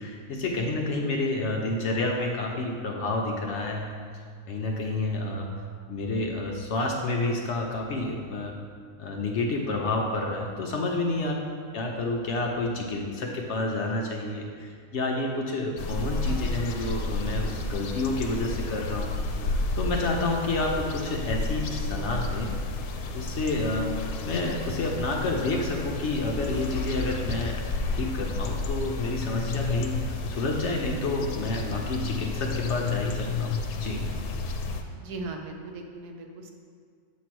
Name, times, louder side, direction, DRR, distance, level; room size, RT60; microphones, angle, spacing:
voice 1, 0.0-3.9 4.5-5.5 5.9-8.5 9.0-11.3 11.7-19.1 19.4-22.5 23.1-27.6 27.9-34.0, left 2 dB, 60° left, 0 dB, 0.8 m, -29 dB
sound 1, 15.8-34.8, left 3 dB, 80° left, 1.1 m, -31 dB
voice 2, 35.0-36.5, right 2 dB, 85° right, 3 dB, 1.3 m, -38 dB
7.4 x 3.1 x 6.0 m, 2.1 s
omnidirectional pair, 1.6 m